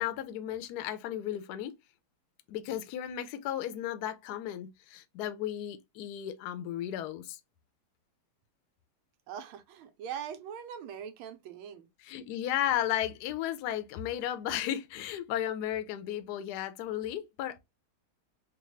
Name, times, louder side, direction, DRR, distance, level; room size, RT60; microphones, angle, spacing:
voice 1, 0.0-1.7 2.5-7.4 12.0-17.6, left 11 dB, 70° left, 0.9 m, -34 dB
voice 2, 9.3-11.9, right 8 dB, 85° right, 1.5 m, -41 dB
3.9 x 2.2 x 3.1 m
omnidirectional pair, 2.2 m